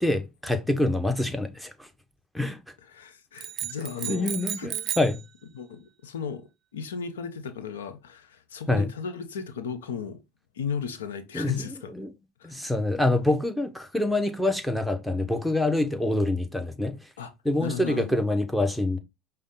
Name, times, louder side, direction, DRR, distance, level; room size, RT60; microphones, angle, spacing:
voice 1, 0.0-1.9 2.3-2.6 4.1-5.2 8.7-8.9 11.3-11.6 12.0-12.1 12.4-17.0 17.4-19.0, left 1 dB, 5° left, 0.9 m, -26 dB
voice 2, 2.8-4.7 5.5-10.2 10.5-11.9 12.4-12.5 17.2-17.3 17.6-18.2, left 6 dB, 85° left, 0.7 m, -35 dB
sound 1, 3.4-5.2, right 11 dB, 50° right, 0.4 m, -33 dB
5.2 x 2.2 x 3.7 m
hypercardioid pair, 80°, 0 cm